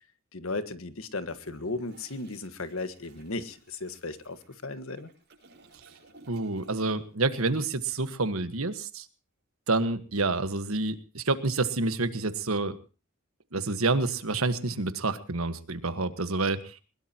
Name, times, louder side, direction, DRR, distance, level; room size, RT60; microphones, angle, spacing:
voice 1, 0.3-5.1, left 3 dB, 75° left, 11 dB, 1.6 m, -36 dB
Toilet flush, 1.3-7.2 7.5-7.8, right 2 dB, 55° right, 7.0 m, -56 dB
voice 2, 6.3-9.1 9.7-12.7 13.5-16.8, right 3 dB, 80° right, 11 dB, 1.5 m, -28 dB
22.0 x 20.5 x 2.9 m, 0.34 s
head